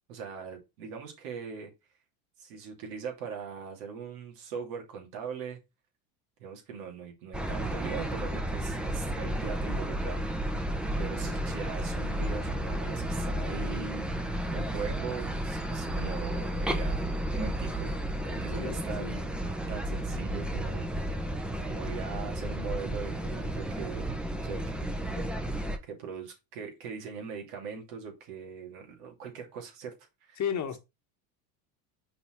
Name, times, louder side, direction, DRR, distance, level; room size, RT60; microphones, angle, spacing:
voice 1, 0.1-1.7 2.4-5.6 6.4-10.7 11.0-14.1 14.5-18.0 18.2-19.2 19.7-20.9 21.2-21.3 21.6-24.0 24.3-29.9 30.2-30.4, right 6 dB, 80° right, 2.7 m, -41 dB
sound 1, 7.3-25.8, right 1 dB, ahead, 0.9 m, -32 dB
voice 2, 18.6-19.1 30.4-30.8, left 8 dB, 40° left, 1.4 m, -33 dB
5.7 x 4.2 x 4.5 m
supercardioid pair, 100°, 45 cm